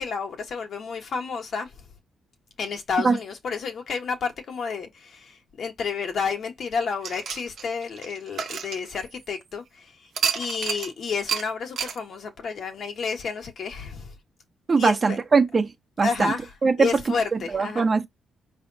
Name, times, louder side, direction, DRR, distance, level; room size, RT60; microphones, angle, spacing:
voice 1, 0.0-1.7 2.6-14.1 14.8-15.2 16.0-16.5 16.8-17.9, left 5 dB, 60° left, 1.6 m, -30 dB
sound 1, 7.0-9.4 10.1-10.9 11.3-11.4 11.8-12.0, right 7 dB, 70° right, 1.1 m, -30 dB
voice 2, 14.7-15.7 16.0-16.3 16.6-16.7 17.3-18.1, right 4 dB, 40° right, 1.2 m, -21 dB
5.0 x 3.4 x 2.8 m
cardioid pair, 90°, 0 cm